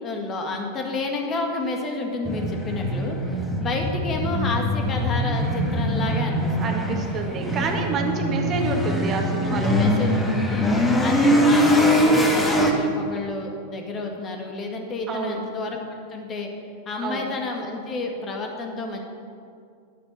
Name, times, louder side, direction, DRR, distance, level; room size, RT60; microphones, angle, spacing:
voice 1, 0.0-3.2 3.6-6.8 9.4-10.1 10.4-10.7 11.0-15.8 16.1-16.5 16.9-19.0, left 3 dB, 25° left, 2 dB, 1.8 m, -30 dB
sound 1, 2.2-12.7, equal, 10° left, 1.8 m, -22 dB
voice 2, 6.6-9.7 15.1-15.4 17.0-17.3, right 4 dB, 30° right, 2 dB, 1.9 m, -28 dB
10.5 x 10.0 x 8.2 m, 2.4 s
figure-of-eight pair, 90°, 0 cm